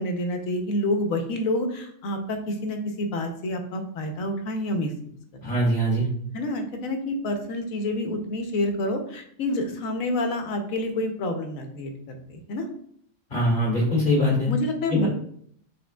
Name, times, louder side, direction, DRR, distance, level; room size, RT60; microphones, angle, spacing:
voice 1, 0.0-4.9 5.4-5.5 6.3-11.9 12.3-12.6 14.5-15.1, left 1 dB, 80° left, 5 dB, 1.2 m, -28 dB
voice 2, 5.4-6.1 13.3-14.5 14.9-15.1, equal, 40° left, -3 dB, 2.0 m, -22 dB
6.3 x 3.6 x 2.3 m, 0.64 s
omnidirectional pair, 1.4 m